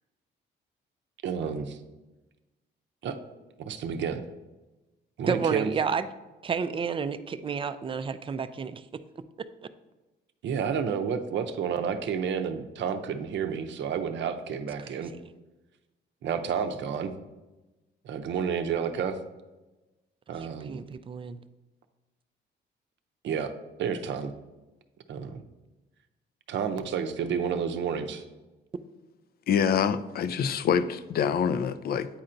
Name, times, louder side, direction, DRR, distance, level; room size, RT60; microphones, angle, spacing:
voice 1, 1.2-1.8 3.0-3.2 3.6-4.2 5.2-5.7 10.4-15.1 16.2-17.1 18.0-19.2 20.3-20.8 23.2-23.5 23.8-24.3 25.1-25.4 26.5-28.2, right 7 dB, 65° right, 8 dB, 0.6 m, -30 dB
voice 2, 5.3-6.1 6.4-8.8 9.4-9.5 20.4-21.4, right 6 dB, 25° right, 12 dB, 0.4 m, -30 dB
voice 3, 29.5-32.1, left 7 dB, 50° left, 13 dB, 0.4 m, -26 dB
9.0 x 4.3 x 2.6 m, 1.1 s
cardioid pair, 90°, 20 cm